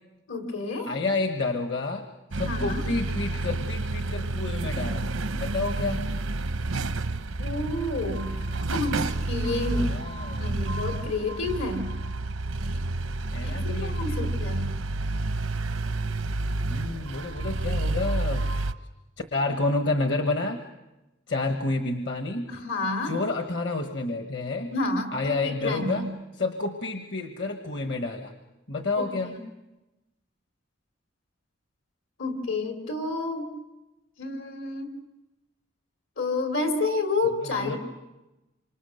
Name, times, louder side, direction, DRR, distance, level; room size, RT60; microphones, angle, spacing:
voice 1, 0.3-0.9 2.4-2.8 7.4-8.3 8.7-11.9 13.4-14.7 22.5-23.2 24.7-26.1 28.9-29.4 32.2-33.5 34.2-34.9 36.2-37.8, left 2 dB, 75° left, 5 dB, 3.4 m, -30 dB
voice 2, 0.8-2.1 2.3-5.1 5.3-6.1 9.8-10.6 13.3-14.5 16.7-18.5 19.3-20.6 21.3-22.5 23.0-24.7 25.1-26.1 26.4-28.3 28.7-29.3 37.4-37.8, left 3 dB, 60° left, 6 dB, 1.4 m, -29 dB
sound 1, 2.3-18.7, right 2 dB, 90° right, 0.9 m, -29 dB
27.5 x 25.5 x 6.6 m, 1.0 s
head